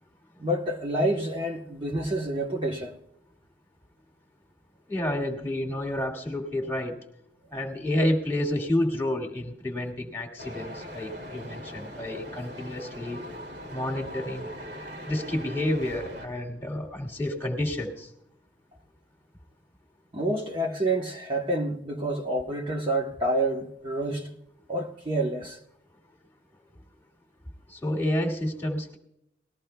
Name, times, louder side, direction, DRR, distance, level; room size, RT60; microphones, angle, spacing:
voice 1, 0.4-3.0 20.1-24.3 24.7-25.6, right 1 dB, 25° right, 0.9 m, -28 dB
voice 2, 4.9-7.0 7.5-13.2 13.7-14.5 15.1-18.1 27.7-29.0, left 1 dB, 10° left, 1.9 m, -29 dB
sound 1, 10.4-16.3, equal, 70° right, 2.0 m, -40 dB
19.5 x 14.0 x 2.2 m
head